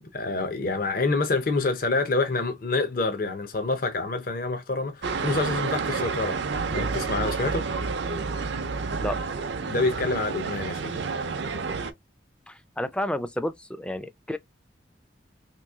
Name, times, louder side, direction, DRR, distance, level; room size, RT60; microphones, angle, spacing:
voice 1, 0.1-6.4 6.7-7.7 9.7-10.9, left 3 dB, 50° left, 0.6 m, -27 dB
sound 1, 5.0-11.9, right 4 dB, 70° right, 0.5 m, -29 dB
voice 2, 12.5-14.4, left 1 dB, 5° left, 0.3 m, -31 dB
2.9 x 2.6 x 3.5 m
head